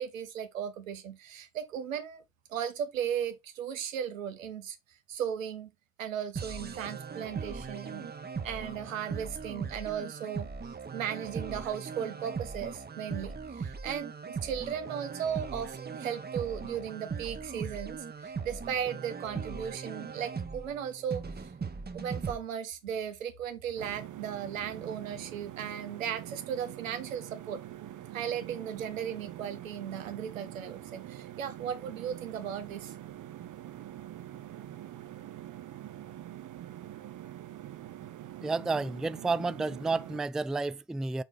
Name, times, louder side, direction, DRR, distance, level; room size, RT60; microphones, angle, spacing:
voice 1, 0.0-2.2 2.5-4.8 5.1-5.7 6.0-8.1 8.4-10.5 10.9-21.2 21.9-27.6 28.1-32.9, right 8 dB, 85° right, 1.1 m, -36 dB
sound 1, 6.4-22.4, right 5 dB, 25° right, 1.1 m, -39 dB
sound 2, 23.8-40.2, right 12 dB, 50° right, 1.0 m, -45 dB
voice 2, 38.4-41.2, right 3 dB, ahead, 0.4 m, -31 dB
7.1 x 4.5 x 3.7 m
figure-of-eight pair, 45°, 39 cm